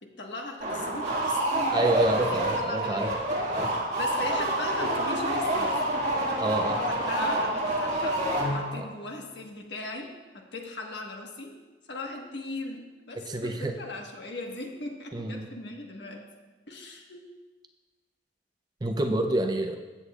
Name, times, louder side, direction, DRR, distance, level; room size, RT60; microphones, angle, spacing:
voice 1, 0.0-3.2 4.0-5.8 6.8-8.2 8.5-11.6 11.9-16.3 16.7-17.3, left 2 dB, 70° left, 1 dB, 1.4 m, -39 dB
sound 1, 0.6-8.9, right 1 dB, 40° right, 1.9 m, -28 dB
voice 2, 1.7-3.1 3.5-3.7 6.4-6.8 8.8-8.9 13.2-13.7 15.1-15.5 18.8-19.8, right 1 dB, 20° right, 6 dB, 0.5 m, -28 dB
15.5 x 8.1 x 2.4 m, 1.3 s
head